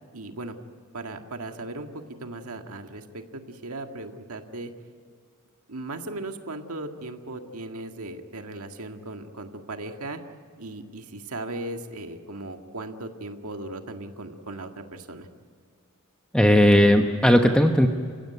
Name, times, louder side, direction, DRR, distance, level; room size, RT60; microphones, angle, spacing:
voice 1, 0.1-0.6 0.9-4.7 5.7-10.2 10.6-15.3, right 2 dB, 75° right, 5 dB, 1.9 m, -37 dB
voice 2, 16.3-17.9, equal, 5° left, 4 dB, 0.9 m, -17 dB
29.0 x 16.0 x 9.4 m, 2.2 s
head